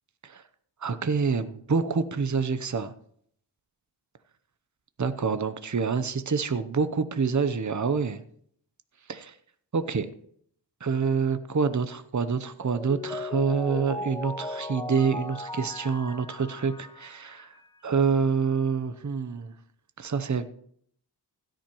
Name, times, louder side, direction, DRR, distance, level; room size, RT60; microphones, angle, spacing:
voice 1, 0.8-2.9 5.0-8.2 9.1-9.3 9.7-10.1 10.8-17.5 17.8-19.5 20.0-20.5, right 5 dB, 40° right, 11 dB, 0.8 m, -27 dB
Mallet percussion, 12.6-17.6, left 2 dB, 10° left, 0.8 m, -37 dB
16.0 x 10.5 x 3.0 m, 0.65 s
wide cardioid pair, 50°, 43 cm